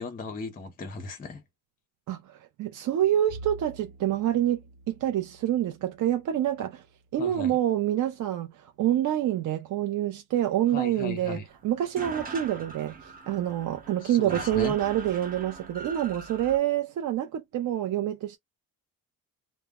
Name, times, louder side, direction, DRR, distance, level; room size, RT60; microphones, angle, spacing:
voice 1, 0.0-1.4 7.2-7.5 10.7-11.4 14.0-14.7, left 4 dB, 25° left, 0.5 m, -37 dB
voice 2, 2.1-4.6 4.9-6.8 7.1-18.4, right 12 dB, 55° right, 0.5 m, -27 dB
Bowed string instrument, 3.3-7.9, right 1 dB, 75° right, 0.9 m, -48 dB
sound 1, 11.5-11.6 11.8-16.6, right 3 dB, 25° right, 0.8 m, -41 dB
2.0 x 2.0 x 3.4 m
cardioid pair, 135°, 37 cm